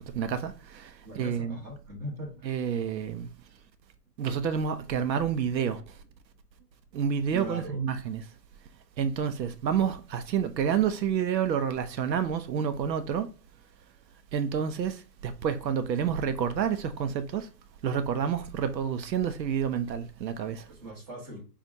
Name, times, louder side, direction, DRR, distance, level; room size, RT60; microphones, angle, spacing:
voice 1, 0.1-1.6 2.4-3.3 4.2-5.9 6.9-8.2 9.0-13.3 14.3-17.5 17.8-20.7, right 8 dB, 90° right, 0.7 m, -29 dB
voice 2, 1.0-2.3 7.3-7.8 20.7-21.4, right 1 dB, 20° right, 1.3 m, -40 dB
5.1 x 2.4 x 2.6 m
hypercardioid pair, 155°, 50 cm